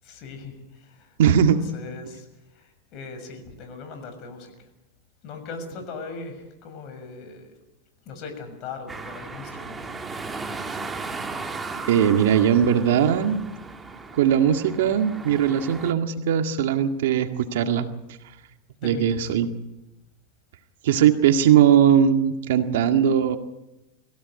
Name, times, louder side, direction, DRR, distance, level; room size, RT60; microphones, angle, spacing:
voice 1, 0.0-4.7 5.2-7.5 8.0-10.0 18.8-19.3, left 4 dB, 50° left, 6 dB, 6.6 m, -40 dB
voice 2, 1.2-1.6 11.8-13.4 14.1-17.9 18.8-19.5 20.8-23.4, right 9 dB, 80° right, 6 dB, 1.9 m, -19 dB
sound 1, 8.9-15.9, right 3 dB, 15° right, 1.9 m, -36 dB
23.0 x 16.5 x 9.6 m, 0.94 s
supercardioid pair, 125°, 0 cm